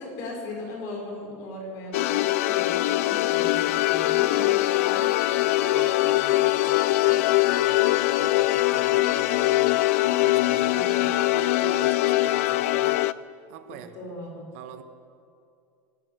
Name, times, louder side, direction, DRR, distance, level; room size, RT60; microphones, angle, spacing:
voice 1, 0.0-5.1 10.7-11.0 13.7-14.5, left 2 dB, 45° left, 1 dB, 6.4 m, -38 dB
sound 1, 1.9-13.1, left 17 dB, 90° left, 0.6 m, -22 dB
voice 2, 4.2-4.6 5.2-13.1 13.5-14.0 14.5-14.8, right 10 dB, 65° right, 9 dB, 1.4 m, -43 dB
24.5 x 13.5 x 7.8 m, 2.4 s
supercardioid pair, 165°, 7 cm